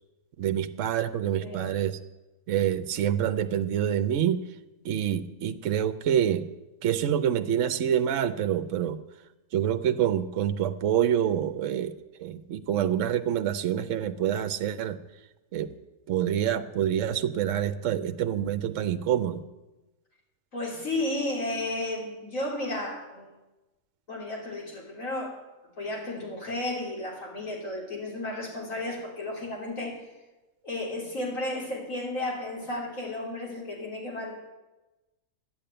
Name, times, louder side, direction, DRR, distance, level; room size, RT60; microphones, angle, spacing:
voice 1, 0.4-2.0 2.5-4.4 4.8-6.5 6.8-9.0 9.5-15.0 15.5-15.7 16.1-19.4, right 10 dB, 65° right, 11 dB, 1.0 m, -27 dB
voice 2, 1.3-1.6 20.5-23.3 24.1-25.4 25.8-30.0 30.6-34.3, left 1 dB, 70° left, -2 dB, 3.6 m, -33 dB
12.0 x 8.5 x 9.0 m, 1.1 s
omnidirectional pair, 1.5 m